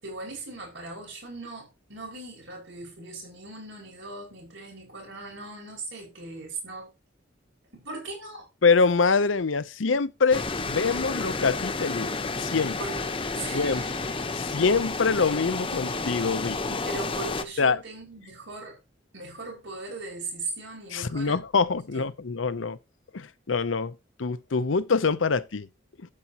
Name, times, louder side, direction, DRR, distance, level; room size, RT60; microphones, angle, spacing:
voice 1, 0.0-6.9 7.7-8.5 12.8-13.0 13.3-14.2 16.8-18.8 19.1-21.4 21.7-22.0, right 3 dB, 70° right, 5.7 m, -39 dB
voice 2, 8.6-12.7 13.5-13.8 14.4-16.6 17.6-17.8 20.9-22.8 23.1-23.9 24.2-25.7, left 4 dB, 80° left, 0.7 m, -25 dB
sound 1, 10.3-17.4, left 3 dB, 25° left, 0.9 m, -31 dB
12.5 x 8.4 x 3.0 m
head